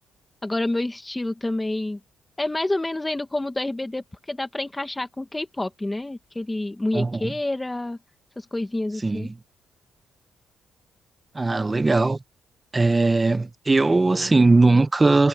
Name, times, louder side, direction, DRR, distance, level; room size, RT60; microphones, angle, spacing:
voice 1, 0.4-2.0 2.4-8.0 8.4-9.3, left 2 dB, 15° left, 2.0 m, -28 dB
voice 2, 6.9-7.3 9.0-9.3 11.3-12.2 12.7-15.3, right 3 dB, 20° right, 0.8 m, -19 dB
cardioid pair, 90°, 0 cm